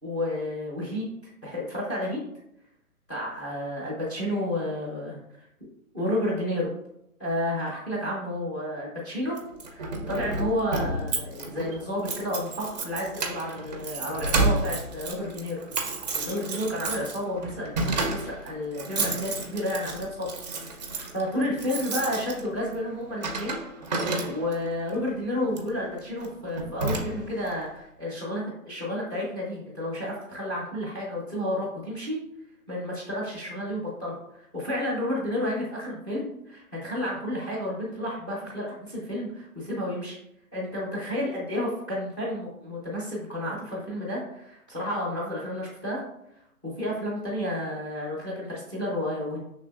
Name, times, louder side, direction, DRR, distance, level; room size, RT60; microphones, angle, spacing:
voice 1, 0.0-1.0 1.4-2.2 3.1-5.1 5.9-6.7 7.2-9.4 9.7-15.6 16.3-20.3 20.6-23.6 23.9-32.2 32.7-40.2 40.5-46.0 46.6-49.4, left 1 dB, 10° left, -4 dB, 0.6 m, -31 dB
Keys jangling, 9.4-24.7 25.5-25.7 26.2-26.3 26.6-27.5, right 3 dB, 30° right, 0.5 m, -31 dB
5.3 x 3.3 x 2.4 m, 0.81 s
hypercardioid pair, 150°, 43 cm